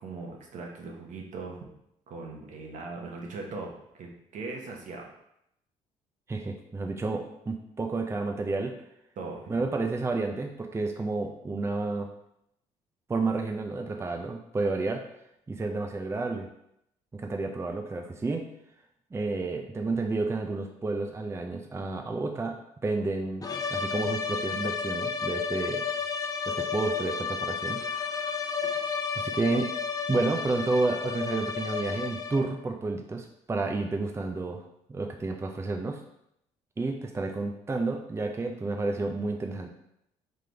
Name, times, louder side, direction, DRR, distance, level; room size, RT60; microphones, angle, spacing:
voice 1, 0.0-1.6 2.1-5.1 9.2-9.5, right 3 dB, 65° right, 1 dB, 1.0 m, -39 dB
voice 2, 6.3-8.7 9.5-12.1 13.1-15.0 15.5-16.5 17.1-18.5 19.1-25.8 26.5-28.5 29.2-29.7 30.1-34.6 34.9-36.0 36.8-39.7, right 3 dB, 20° right, 3 dB, 0.5 m, -30 dB
sound 1, 23.4-32.6, left 6 dB, 25° left, 0.6 m, -32 dB
3.7 x 3.3 x 3.4 m, 0.77 s
supercardioid pair, 70°, 14 cm